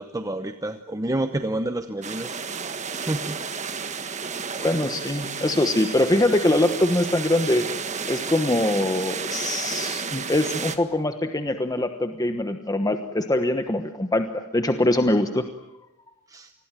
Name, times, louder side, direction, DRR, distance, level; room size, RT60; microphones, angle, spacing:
voice 1, 0.0-2.4 2.9-3.4 16.3-16.5, right 1 dB, 15° right, 8 dB, 0.9 m, -29 dB
sound 1, 2.0-10.8, right 5 dB, 35° right, 1.6 m, -32 dB
voice 2, 4.6-7.6 8.1-15.5, left 1 dB, 15° left, 7 dB, 1.2 m, -23 dB
28.0 x 21.5 x 9.1 m, 0.96 s
head